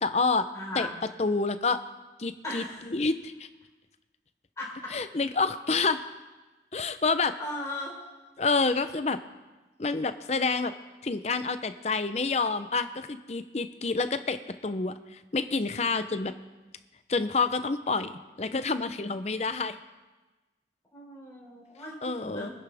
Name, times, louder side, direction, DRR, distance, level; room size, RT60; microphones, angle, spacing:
voice 1, 0.0-0.4 0.8-0.9 1.2-1.8 2.2-2.6 2.9-3.5 4.9-6.0 6.7-7.3 8.4-9.2 9.8-10.7 11.0-16.3 17.1-19.8 22.0-22.5, left 4 dB, 40° left, 11 dB, 0.6 m, -28 dB
voice 2, 0.5-0.9 2.4-2.9 4.6-4.9 7.4-8.0 20.9-22.5, left 1 dB, 20° left, -6 dB, 4.2 m, -37 dB
24.0 x 11.0 x 3.5 m, 1.2 s
head